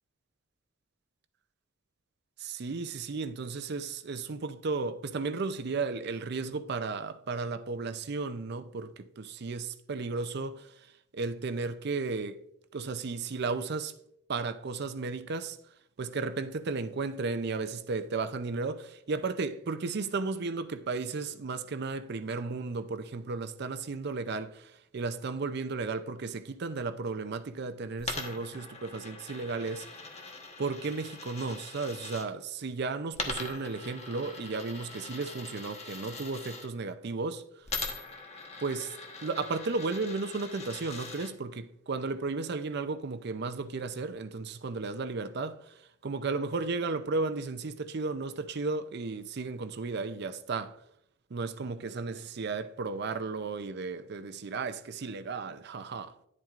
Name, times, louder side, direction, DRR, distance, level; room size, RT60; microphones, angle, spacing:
voice 1, 2.4-10.7 11.1-12.4 12.7-13.9 14.3-15.6 16.0-29.9 30.6-37.4 38.6-38.9 39.2-45.7 46.0-50.7 51.3-56.1, right 4 dB, 55° right, 0.5 m, -34 dB
Coin (dropping), 28.0-32.3 33.1-36.7 37.7-41.3, left 3 dB, 35° left, 1.1 m, -41 dB
10.5 x 7.5 x 2.5 m
head